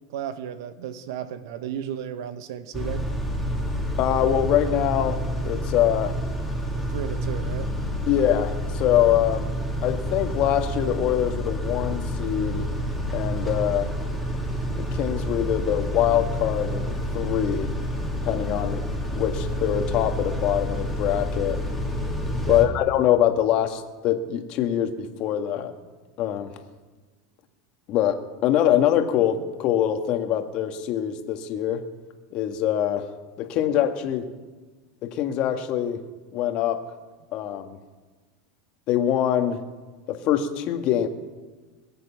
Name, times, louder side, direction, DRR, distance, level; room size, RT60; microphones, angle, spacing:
voice 1, 0.1-3.1 6.8-7.7 13.6-13.7 22.5-22.6, right 9 dB, 75° right, 12 dB, 1.1 m, -34 dB
Car / Idling / Accelerating revving vroom, 2.7-22.6, equal, 5° right, 3.0 m, -29 dB
voice 2, 4.0-5.2 5.4-6.1 8.1-9.5 9.8-12.6 13.1-13.9 14.8-16.9 17.1-17.7 18.2-18.8 19.1-21.6 22.5-25.7 26.2-26.5 27.9-31.8 32.3-33.1 33.4-34.2 35.0-36.0 36.3-36.8 37.3-37.8 38.9-39.6 40.1-41.1, left 11 dB, 50° left, 6 dB, 1.8 m, -24 dB
21.5 x 8.2 x 7.3 m, 1.4 s
supercardioid pair, 125°, 2 cm